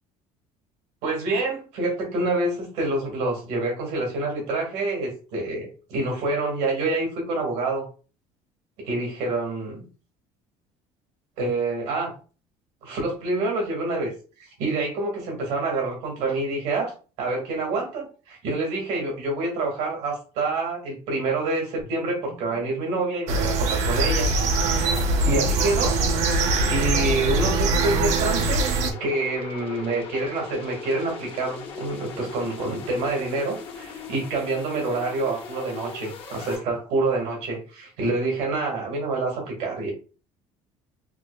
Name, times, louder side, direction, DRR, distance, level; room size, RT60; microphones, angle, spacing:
voice 1, 1.0-7.9 8.8-9.8 11.4-12.1 12.8-14.1 14.6-16.9 17.2-24.3 24.6-24.9 25.2-26.0 26.7-28.7 29.0-39.9, right 2 dB, 85° right, 0 dB, 1.9 m, -27 dB
sound 1, 21.8-36.6, left 5 dB, 50° left, 0.9 m, -40 dB
sound 2, 23.3-28.9, right 2 dB, 65° right, 0.7 m, -22 dB
5.9 x 2.1 x 2.3 m, 0.36 s
cardioid pair, 150°, 12 cm